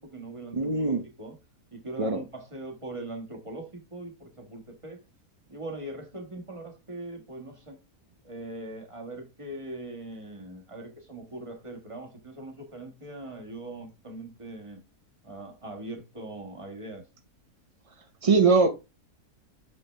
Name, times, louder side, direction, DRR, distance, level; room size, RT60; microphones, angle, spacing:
voice 1, 0.0-1.4 1.7-5.0 5.5-7.8 8.2-14.8 15.2-17.0, right 2 dB, 20° right, 1.5 m, -41 dB
voice 2, 0.5-1.0 2.0-2.2 18.2-18.7, right 4 dB, 50° right, 0.4 m, -21 dB
6.5 x 5.5 x 3.2 m
omnidirectional pair, 1.7 m